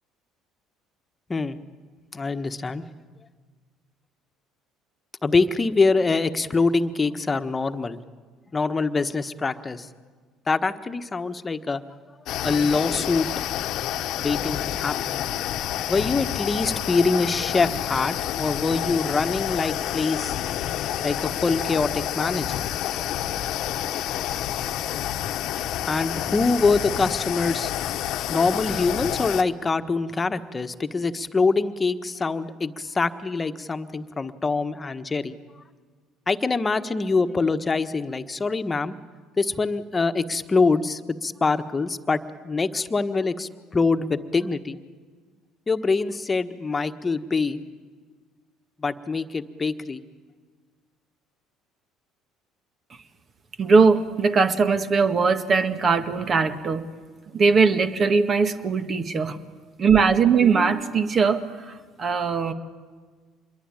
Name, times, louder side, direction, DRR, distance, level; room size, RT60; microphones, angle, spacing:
voice 1, 2.1-2.8 5.2-8.0 8.5-9.9 10.5-11.8 12.4-13.3 14.2-15.2 15.9-20.3 21.0-22.6 25.9-27.7 28.3-35.4 36.3-39.0 39.4-44.8 45.7-47.6 48.8-50.0, left 4 dB, 25° left, 9 dB, 1.4 m, -24 dB
sound 1, 12.3-29.4, left 12 dB, 65° left, 1.1 m, -29 dB
voice 2, 53.6-56.8 57.3-59.4 59.8-62.5, right 5 dB, 40° right, 9 dB, 1.8 m, -20 dB
26.5 x 22.0 x 9.0 m, 1.5 s
hypercardioid pair, 65°, 0 cm